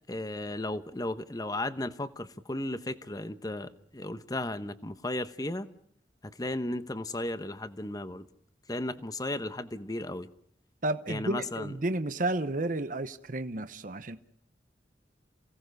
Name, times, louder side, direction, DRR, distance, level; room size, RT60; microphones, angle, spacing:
voice 1, 0.1-5.7 6.4-8.3 8.7-10.3 11.1-11.7, left 1 dB, 20° left, 1.0 m, -35 dB
voice 2, 10.8-14.2, right 2 dB, 45° right, 0.9 m, -32 dB
28.5 x 18.0 x 6.6 m
head